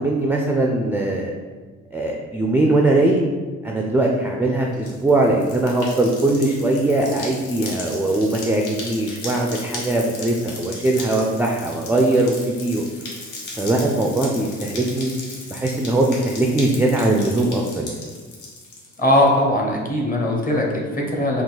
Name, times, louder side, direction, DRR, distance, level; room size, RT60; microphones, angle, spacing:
voice 1, 0.0-1.3 1.9-3.2 3.6-12.8 13.6-15.1 15.5-17.9, right 2 dB, 5° right, 0 dB, 0.3 m, -20 dB
sound 1, 4.7-18.9, left 2 dB, 75° left, 1.0 m, -36 dB
voice 2, 19.0-21.4, left 1 dB, 30° left, -1 dB, 0.9 m, -20 dB
3.7 x 2.5 x 4.0 m, 1.4 s
cardioid pair, 90°, 30 cm